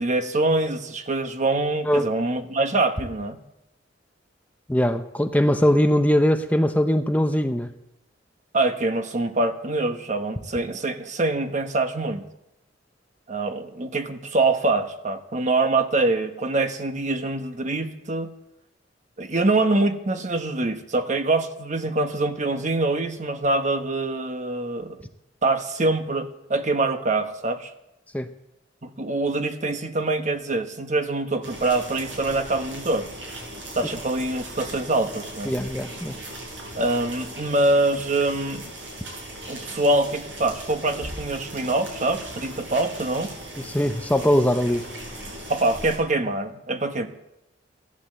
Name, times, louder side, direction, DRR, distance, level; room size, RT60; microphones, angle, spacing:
voice 1, 0.0-3.4 8.5-12.2 13.3-18.3 19.2-25.0 25.4-27.7 28.8-33.1 33.7-35.5 36.7-38.7 39.5-43.3 45.5-47.1, right 2 dB, 40° right, 8 dB, 1.2 m, -24 dB
voice 2, 4.7-7.7 28.1-28.3 35.5-36.2 43.6-44.9, equal, 10° left, 7 dB, 0.6 m, -21 dB
sound 1, 31.4-46.0, right 1 dB, 70° right, 7.2 m, -38 dB
15.5 x 11.5 x 7.7 m, 0.86 s
head